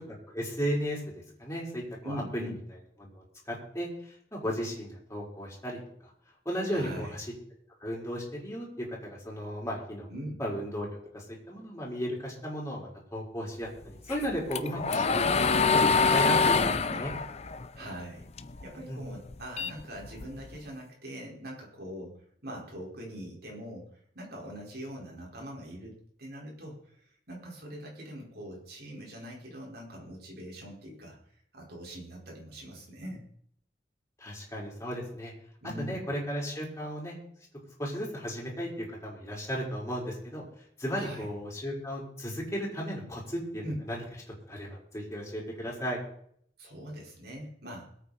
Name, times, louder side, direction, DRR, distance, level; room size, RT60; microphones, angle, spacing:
voice 1, 0.3-1.0 1.4-2.2 3.0-3.9 4.3-6.1 6.4-7.2 7.8-10.1 10.4-10.9 11.1-17.1 18.9-19.0 34.2-35.3 35.8-37.2 37.8-40.4 40.8-44.0 44.5-44.7 44.9-46.0, equal, 15° left, -4 dB, 4.4 m, -35 dB
voice 2, 2.0-2.6 6.7-7.1 10.1-10.4 16.4-17.1 17.7-18.3 18.6-31.2 31.5-33.2 35.6-36.0 41.0-41.3 43.6-43.8 46.6-47.9, equal, 60° right, -1 dB, 4.8 m, -42 dB
sound 1, 14.1-18.6 19.0-20.5, left 4 dB, 40° left, 0.7 m, -25 dB
21.5 x 8.7 x 4.3 m, 0.66 s
head